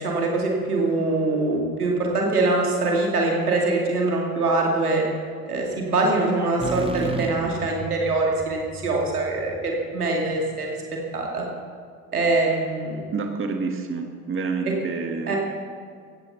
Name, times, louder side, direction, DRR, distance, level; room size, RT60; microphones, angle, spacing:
voice 1, 0.0-5.0 5.5-10.7 11.1-11.4 12.1-13.1 15.3-15.4, right 2 dB, 85° right, -1 dB, 2.5 m, -23 dB
sound 1, 6.6-10.4, right 3 dB, 10° right, 1.2 m, -34 dB
voice 2, 13.1-15.4, right 4 dB, 30° right, 5 dB, 1.6 m, -28 dB
17.0 x 14.5 x 4.1 m, 2.1 s
figure-of-eight pair, 65°, 44 cm